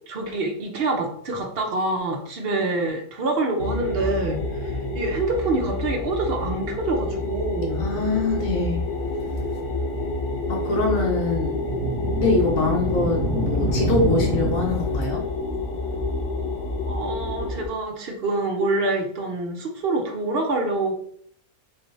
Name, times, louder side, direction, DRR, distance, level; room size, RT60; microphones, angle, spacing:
voice 1, 0.1-7.9 16.9-20.9, right 2 dB, 50° right, 1 dB, 0.8 m, -26 dB
sound 1, 3.6-17.7, left 2 dB, 90° left, 1.2 m, -28 dB
voice 2, 7.8-8.8 10.5-11.6 12.2-15.2, left 3 dB, 65° left, -1 dB, 1.4 m, -24 dB
sound 2, 11.4-15.2, right 2 dB, 85° right, 1.2 m, -27 dB
3.9 x 3.2 x 2.7 m, 0.62 s
omnidirectional pair, 1.6 m